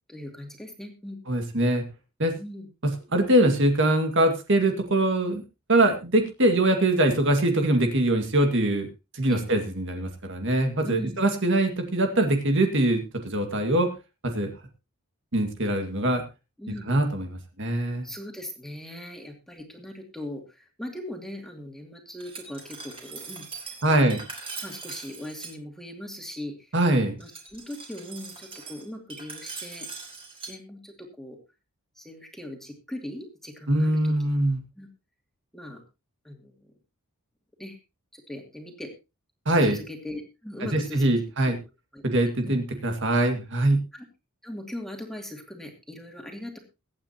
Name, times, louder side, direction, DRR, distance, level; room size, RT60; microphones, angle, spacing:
voice 1, 0.1-1.2 2.3-2.7 9.3-9.4 10.8-11.2 16.6-16.9 18.0-24.2 24.6-26.7 27.2-29.9 30.5-31.4 32.0-34.1 34.8-34.9 35.5-35.8 36.2-36.7 37.6-37.8 38.1-38.9 39.6-41.1 41.9-42.6 43.9-44.0 44.4-46.6, left 1 dB, ahead, 2 dB, 2.5 m, -39 dB
voice 2, 1.3-1.8 2.2-2.3 2.8-5.4 5.7-8.9 9.1-13.9 14.2-14.5 15.3-16.2 16.9-18.1 23.8-24.2 26.7-27.2 33.7-34.6 39.5-39.8 40.7-41.6 42.0-43.8, right 1 dB, 55° right, 5 dB, 2.1 m, -23 dB
Glass, 22.2-25.5 27.2-30.5, right 4 dB, 25° right, 3.5 m, -41 dB
23.0 x 8.8 x 2.9 m, 0.28 s
head